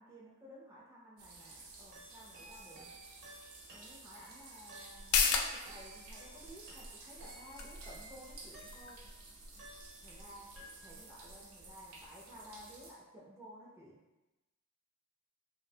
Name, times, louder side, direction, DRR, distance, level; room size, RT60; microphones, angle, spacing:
voice 1, 0.0-2.9 3.7-9.0 10.0-10.5 10.8-14.0, equal, 10° right, -7 dB, 0.3 m, -54 dB
sound 1, 1.2-12.9, right 3 dB, 90° right, 0.5 m, -54 dB
sound 2, 1.9-9.2 9.6-10.3 10.6-11.2, right 1 dB, 55° right, 0.8 m, -56 dB
sound 3, 4.9-12.1 12.4-12.5, left 5 dB, 85° left, 0.3 m, -38 dB
2.5 x 2.0 x 2.6 m, 1.0 s
head